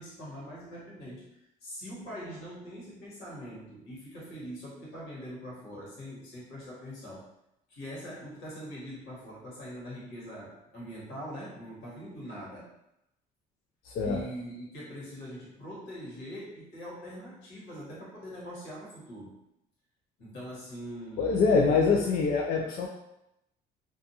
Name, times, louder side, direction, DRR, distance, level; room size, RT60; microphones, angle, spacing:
voice 1, 0.0-7.3 7.7-12.7 14.0-19.3 20.2-21.9 22.7-22.9, equal, 90° left, -6 dB, 1.3 m, -43 dB
voice 2, 13.8-14.2 21.2-22.9, left 4 dB, 60° left, -1 dB, 0.4 m, -24 dB
2.5 x 2.3 x 2.7 m, 0.85 s
cardioid pair, 110°, 17 cm